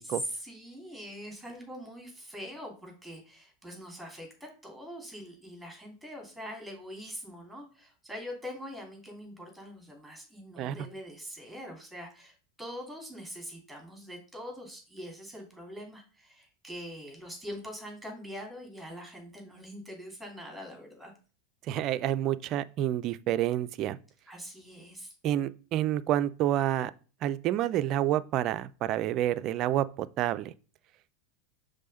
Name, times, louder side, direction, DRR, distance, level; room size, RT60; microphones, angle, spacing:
voice 1, 0.0-21.1 24.3-25.1, equal, ahead, 2.8 m, -43 dB
voice 2, 21.6-24.0 25.2-26.9 27.2-30.5, right 12 dB, 45° right, 0.4 m, -28 dB
5.4 x 3.6 x 5.4 m
figure-of-eight pair, 85°, 0 cm